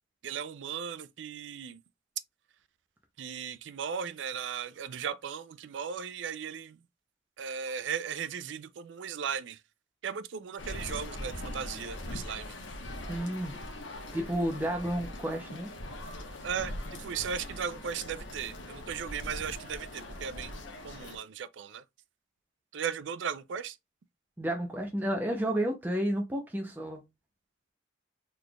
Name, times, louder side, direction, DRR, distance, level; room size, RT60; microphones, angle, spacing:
voice 1, 0.2-1.8 3.2-6.8 7.4-9.6 10.0-12.6 16.4-21.8 22.7-23.8, right 7 dB, 80° right, 0.4 m, -37 dB
sound 1, 10.6-21.2, left 1 dB, 90° left, 1.0 m, -41 dB
voice 2, 13.1-13.5 14.1-15.7 24.4-27.0, right 1 dB, 10° right, 0.5 m, -31 dB
4.0 x 3.2 x 2.3 m
head